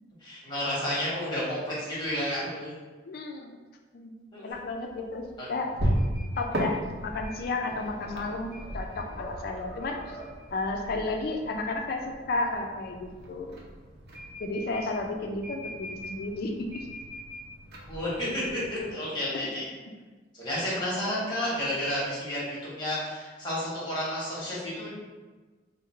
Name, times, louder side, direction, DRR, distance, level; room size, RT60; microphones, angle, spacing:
voice 1, 0.2-2.7 4.3-4.5 5.4-5.5 17.9-19.6 20.3-24.9, left 1 dB, 25° left, -7 dB, 1.2 m, -31 dB
voice 2, 3.1-3.5 3.9-4.1 4.4-5.7 6.4-10.0 10.5-12.0 12.3-13.5 14.4-16.9 19.3-19.5, left 2 dB, 55° left, 3 dB, 0.3 m, -32 dB
sound 1, 4.5-18.9, equal, 55° right, 0.7 m, -36 dB
sound 2, 8.1-8.8 9.2-10.6, right 3 dB, 5° left, 0.6 m, -46 dB
3.6 x 2.0 x 4.2 m, 1.3 s
head